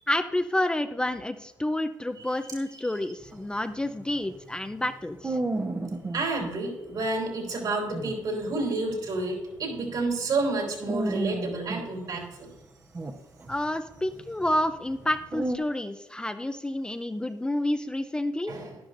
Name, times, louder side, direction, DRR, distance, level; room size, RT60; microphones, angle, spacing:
voice 1, 0.1-5.4 13.5-18.6, left 1 dB, 10° left, 8 dB, 0.5 m, -29 dB
sound 1, 3.2-6.5 6.9-7.1 7.5-7.6 7.9-10.5 10.8-12.7 12.9-15.6, right 2 dB, 25° right, 1.0 m, -34 dB
voice 2, 6.1-12.5 18.5-18.8, right 2 dB, 65° right, 0 dB, 3.8 m, -30 dB
11.5 x 11.0 x 2.6 m, 0.99 s
cardioid pair, 95°, 8 cm